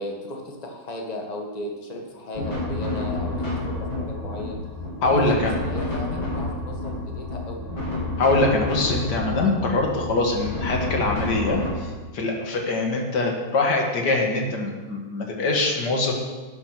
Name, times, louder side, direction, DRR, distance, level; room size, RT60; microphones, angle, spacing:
voice 1, 0.0-4.6 5.0-7.7, left 1 dB, 20° left, 1 dB, 1.5 m, -35 dB
sound 1, 2.3-11.7, left 2 dB, 75° left, 3.6 m, -29 dB
voice 2, 5.0-5.5 8.2-16.1, left 2 dB, 60° left, 2 dB, 2.3 m, -23 dB
11.0 x 8.9 x 6.0 m, 1.3 s
omnidirectional pair, 2.2 m